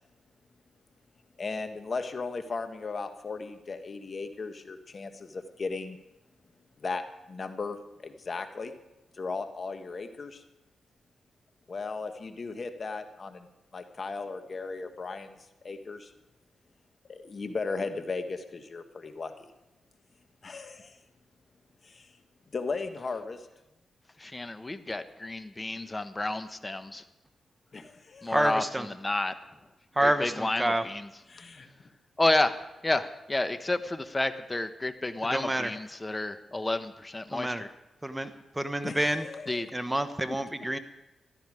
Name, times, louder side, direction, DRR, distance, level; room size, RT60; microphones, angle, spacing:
voice 1, 1.4-6.0 6.8-8.7 9.1-10.4 11.7-13.5 13.7-15.4 15.6-16.1 17.1-19.5 20.4-21.0 21.8-22.1 22.5-23.5 24.9-25.0 27.7-28.4 31.3-31.7 38.8-39.7 40.3-40.4, left 4 dB, 50° left, 8 dB, 1.4 m, -36 dB
voice 2, 24.2-27.0 28.2-29.3 30.0-31.1 32.2-37.7 39.5-39.7, left 2 dB, 25° left, 10 dB, 1.1 m, -30 dB
voice 3, 28.3-28.9 30.0-30.8 35.3-35.7 37.3-37.6 38.0-38.3 38.6-39.2 39.7-40.8, right 1 dB, 15° right, 10 dB, 1.0 m, -28 dB
15.0 x 12.5 x 4.9 m, 0.97 s
cardioid pair, 65°, 0 cm